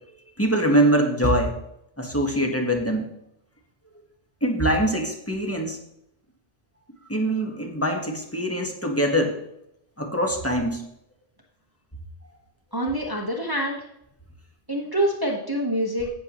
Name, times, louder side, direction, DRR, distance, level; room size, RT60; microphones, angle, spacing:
voice 1, 0.4-1.5 2.0-3.1 4.4-5.8 7.1-9.4 10.0-10.8, right 1 dB, 15° left, 2 dB, 1.4 m, -23 dB
voice 2, 12.7-13.8 14.7-16.1, right 1 dB, 20° right, -2 dB, 1.3 m, -26 dB
17.0 x 6.9 x 3.0 m, 0.80 s
omnidirectional pair, 1.1 m